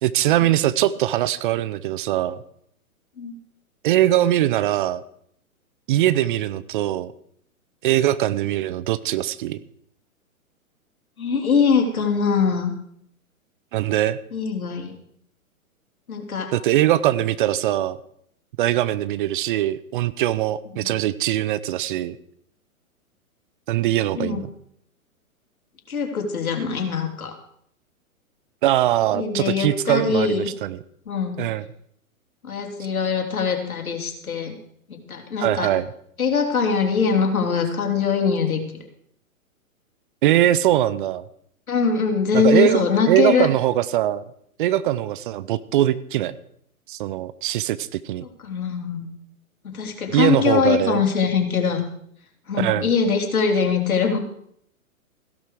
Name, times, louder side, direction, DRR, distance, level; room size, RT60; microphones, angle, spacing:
voice 1, 0.0-2.4 3.8-5.0 5.9-7.1 7.8-9.6 13.7-14.2 16.5-18.0 18.6-22.2 23.7-24.5 28.6-30.8 31.4-31.6 35.4-35.9 40.2-41.2 42.3-44.2 44.6-46.4 46.9-48.2 50.1-51.0 52.5-52.9, right 13 dB, 35° right, 17 dB, 0.7 m, -21 dB
voice 2, 11.2-12.7 14.3-14.9 16.1-16.5 20.8-21.0 24.1-24.4 25.9-27.3 29.1-30.5 31.1-31.4 32.4-34.6 34.9-35.7 36.2-38.6 41.7-43.5 48.4-49.1 49.6-51.8 52.5-54.2, left 5 dB, 75° left, 3 dB, 3.6 m, -22 dB
16.0 x 12.0 x 4.9 m, 0.68 s
figure-of-eight pair, 120°, 43 cm